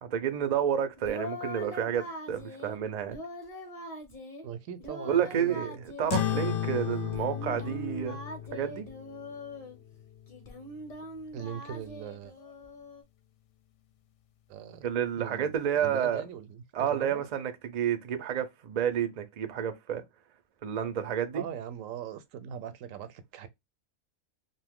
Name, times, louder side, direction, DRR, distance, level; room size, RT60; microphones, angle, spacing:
voice 1, 0.0-3.2 5.1-5.7 6.0-8.2 8.5-8.9 14.8-16.2 16.7-20.0 20.6-21.4, right 9 dB, 60° right, 0.4 m, -30 dB
Singing, 1.0-2.8 3.1-4.4 4.8-6.5 6.9-9.8 10.3-13.0, left 1 dB, 35° left, 0.8 m, -42 dB
voice 2, 4.4-5.8 11.3-12.4 14.5-14.9 15.2-17.3 21.3-23.5, right 8 dB, 85° right, 1.0 m, -40 dB
sound 1, 6.1-11.0, left 10 dB, 70° left, 0.9 m, -35 dB
2.7 x 2.3 x 3.5 m
omnidirectional pair, 1.3 m